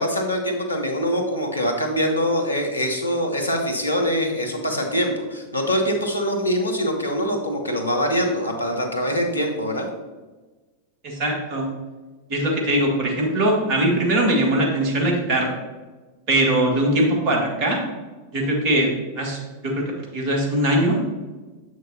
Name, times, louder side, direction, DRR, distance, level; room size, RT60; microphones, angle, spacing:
voice 1, 0.0-9.9, equal, 80° left, 3 dB, 1.0 m, -23 dB
voice 2, 11.0-11.7 12.3-15.5 16.3-17.8 18.3-18.9 19.2-19.4 19.6-19.8 20.1-21.0, right 1 dB, 45° right, 0 dB, 1.8 m, -21 dB
7.6 x 6.3 x 2.8 m, 1.3 s
figure-of-eight pair, 90°, 0 cm